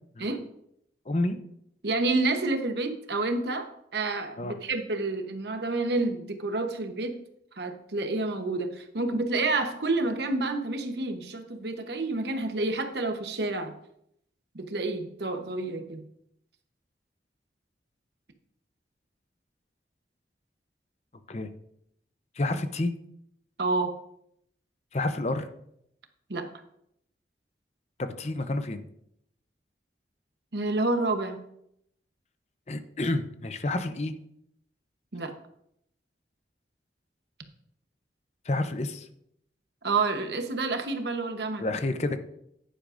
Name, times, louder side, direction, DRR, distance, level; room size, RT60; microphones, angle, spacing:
voice 1, 1.1-1.4 4.4-4.5 21.3-21.5 22.4-22.9 24.9-25.5 28.0-28.8 32.7-34.1 38.4-39.1 41.6-42.2, left 2 dB, 40° left, 9 dB, 0.6 m, -29 dB
voice 2, 1.8-7.2 7.5-13.7 14.5-16.0 23.6-23.9 26.3-26.5 30.5-31.4 35.1-35.3 39.8-41.6, right 3 dB, 75° right, 6 dB, 1.0 m, -29 dB
10.0 x 9.9 x 2.6 m, 0.75 s
head